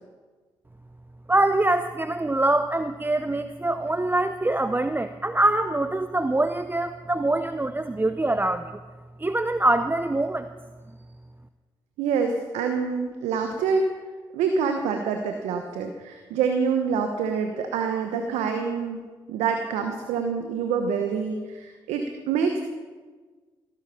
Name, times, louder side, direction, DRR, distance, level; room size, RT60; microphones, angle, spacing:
voice 1, 1.3-8.7 9.2-10.5, right 2 dB, 20° right, 10 dB, 0.7 m, -24 dB
voice 2, 12.0-13.9 14.3-19.0 19.3-22.6, right 5 dB, 80° right, 5 dB, 1.1 m, -26 dB
17.0 x 10.5 x 5.7 m, 1.4 s
hypercardioid pair, 45°, 11 cm